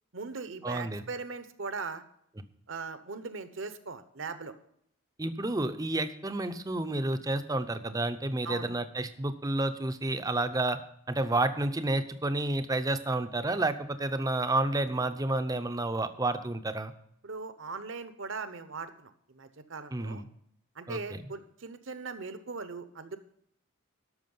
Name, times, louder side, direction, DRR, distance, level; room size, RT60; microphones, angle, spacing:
voice 1, 0.1-2.0 2.7-4.5 8.4-8.7 17.2-20.2 20.7-23.2, right 4 dB, 60° right, 11 dB, 0.9 m, -39 dB
voice 2, 0.6-1.0 5.2-10.8 11.1-16.9 19.9-20.3 20.9-21.2, right 2 dB, 15° right, 9 dB, 0.6 m, -30 dB
13.0 x 6.2 x 5.4 m, 0.70 s
head